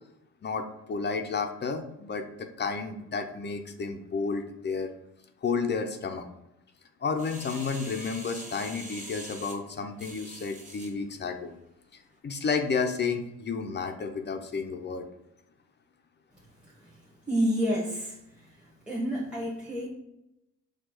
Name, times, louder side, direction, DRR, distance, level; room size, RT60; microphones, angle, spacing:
voice 1, 0.4-4.9 5.4-6.3 7.0-11.5 12.2-15.1, left 5 dB, 35° left, 5 dB, 0.5 m, -31 dB
sound 1, 7.2-10.9 11.5-11.6, right 1 dB, 25° right, 1.1 m, -44 dB
voice 2, 17.3-18.5 18.9-19.9, equal, 5° right, -5 dB, 1.1 m, -29 dB
4.4 x 2.4 x 4.2 m, 0.85 s
cardioid pair, 90°, 30 cm